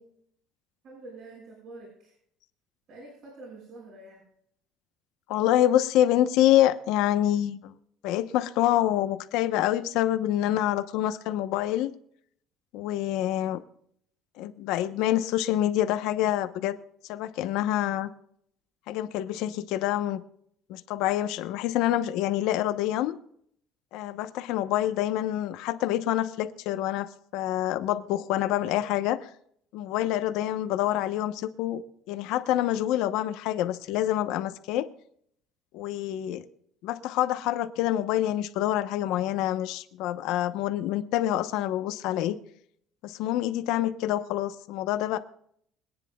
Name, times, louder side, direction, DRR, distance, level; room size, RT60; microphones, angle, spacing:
voice 1, 0.8-2.1 2.9-4.2, right 2 dB, 50° right, -4 dB, 6.6 m, -46 dB
voice 2, 5.3-7.7 8.0-11.9 12.7-13.6 14.4-16.8 17.1-18.1 18.9-20.2 20.7-23.1 23.9-29.3 29.7-31.8 32.1-34.9 35.7-36.5 36.8-42.4 43.0-45.2, left 13 dB, 70° left, 10 dB, 0.9 m, -26 dB
24.0 x 9.9 x 2.3 m, 0.65 s
cardioid pair, 165°, 0 cm